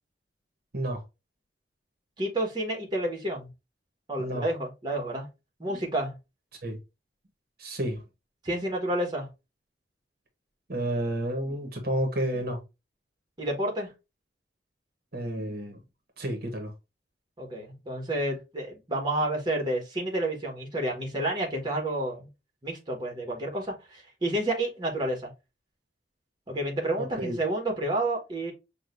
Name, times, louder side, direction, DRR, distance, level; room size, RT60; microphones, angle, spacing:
voice 1, 2.2-3.5 4.1-5.3 5.6-6.1 8.4-9.3 13.4-13.9 17.4-22.3 22.6-25.3 26.5-28.5, right 1 dB, 25° right, 1.3 m, -30 dB
voice 2, 7.6-8.0 10.7-12.6 15.1-15.8 16.2-16.7 27.0-27.4, right 1 dB, 55° right, 1.2 m, -30 dB
6.3 x 2.5 x 2.5 m
head